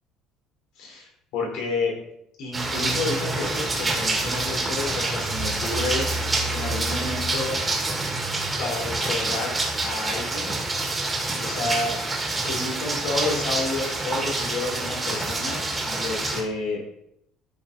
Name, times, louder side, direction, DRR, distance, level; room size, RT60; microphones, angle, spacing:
voice 1, 0.8-1.9 2.4-6.1 6.5-7.6 8.6-9.6 9.8-10.6 11.4-11.9 12.4-16.8, left 3 dB, 70° left, 0 dB, 4.1 m, -30 dB
sound 1, 2.5-16.4, right 2 dB, 10° right, 1.6 m, -27 dB
13.5 x 6.3 x 4.0 m, 0.76 s
cardioid pair, 180°, 0 cm